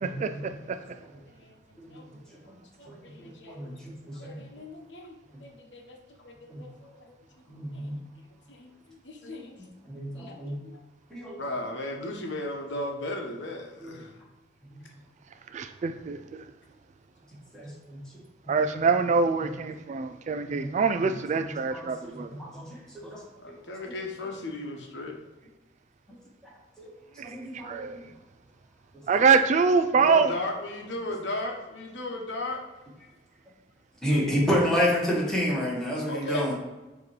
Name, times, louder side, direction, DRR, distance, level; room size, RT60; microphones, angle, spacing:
voice 1, 0.0-0.4 1.8-2.0 2.9-3.7 4.1-4.4 6.5-6.6 7.5-8.0 9.2-9.4 9.9-10.6 11.1-11.4 13.8-13.9 17.5-18.0 18.6-18.7 20.4-22.2 22.5-22.6 22.9-23.2 26.8-26.9 27.3-27.8 34.0-36.5, equal, 5° left, -5 dB, 1.7 m, -30 dB
voice 2, 0.8-1.6 1.9-2.5 2.8-3.8 4.1-7.1 7.6-8.0 8.5-9.6 10.1-10.8 11.4-14.2 23.3-25.2 29.9-32.6 36.1-36.5, left 1 dB, 80° left, 2 dB, 1.0 m, -37 dB
voice 3, 15.5-16.4 18.5-22.3 27.2-27.4 27.7-28.0 29.1-30.3, right 5 dB, 40° right, 9 dB, 0.3 m, -24 dB
7.2 x 3.0 x 4.7 m, 1.1 s
head